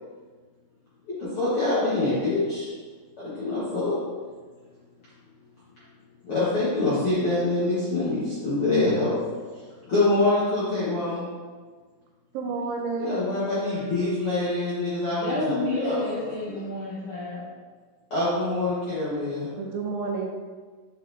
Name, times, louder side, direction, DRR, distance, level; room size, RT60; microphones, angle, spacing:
voice 1, 1.2-2.7 3.2-3.9 6.2-9.1 9.9-11.3 13.0-16.3 18.1-19.5, left 2 dB, 70° left, -11 dB, 1.2 m, -25 dB
voice 2, 12.3-13.1 18.9-19.0 19.6-20.3, right 4 dB, 85° right, 2 dB, 2.1 m, -30 dB
voice 3, 15.1-17.4, left 2 dB, 50° left, -13 dB, 2.6 m, -30 dB
8.5 x 4.2 x 2.7 m, 1.5 s
omnidirectional pair, 4.6 m